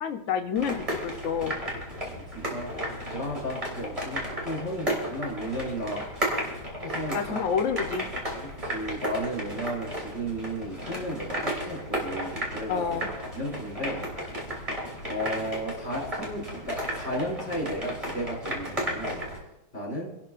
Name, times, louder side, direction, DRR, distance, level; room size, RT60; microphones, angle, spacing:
voice 1, 0.0-1.6 7.1-8.0 12.7-13.1, left 7 dB, 75° left, 5 dB, 0.7 m, -28 dB
sound 1, 0.6-19.4, equal, 15° right, 3.1 m, -34 dB
voice 2, 2.1-6.4 6.8-7.4 8.6-13.0 13.3-14.1 15.1-19.2 19.7-20.1, equal, 25° left, -6 dB, 5.1 m, -34 dB
27.5 x 12.0 x 2.5 m, 0.95 s
omnidirectional pair, 2.2 m